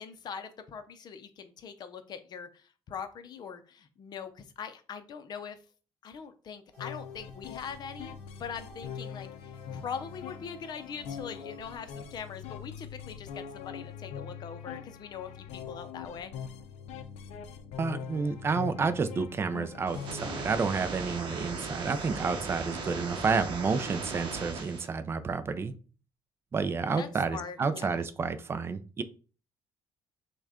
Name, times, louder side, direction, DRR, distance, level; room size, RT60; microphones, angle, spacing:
voice 1, 0.0-5.6 6.0-16.3 27.0-27.9, left 7 dB, 40° left, 9 dB, 0.5 m, -42 dB
sound 1, 6.7-12.4, right 1 dB, 15° left, 1.7 m, -56 dB
sound 2, 6.8-20.5, left 7 dB, 90° left, 0.5 m, -42 dB
voice 2, 17.8-25.7 26.5-29.0, right 4 dB, 25° right, 11 dB, 0.4 m, -30 dB
sound 3, 19.9-24.9, right 4 dB, 50° right, 0.8 m, -38 dB
6.1 x 2.2 x 3.6 m, 0.37 s
cardioid pair, 170°, 11 cm